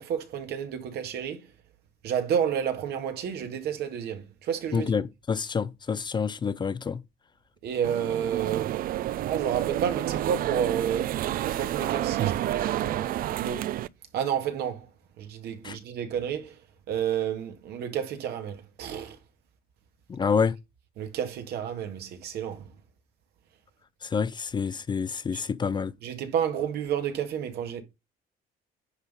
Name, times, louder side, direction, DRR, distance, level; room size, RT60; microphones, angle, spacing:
voice 1, 0.0-1.5 2.0-4.9 7.6-8.8 9.3-11.2 11.5-13.7 14.1-14.9 15.2-16.6 16.9-19.2 21.0-22.7 25.3-25.4 26.0-27.8, right 8 dB, 75° right, 1.8 m, -30 dB
voice 2, 4.7-7.0 15.6-15.8 20.1-20.6 24.0-25.9, left 6 dB, 25° left, 0.5 m, -28 dB
sound 1, 7.8-13.9, right 13 dB, 60° right, 0.4 m, -29 dB
9.9 x 4.1 x 5.2 m
cardioid pair, 110°, 17 cm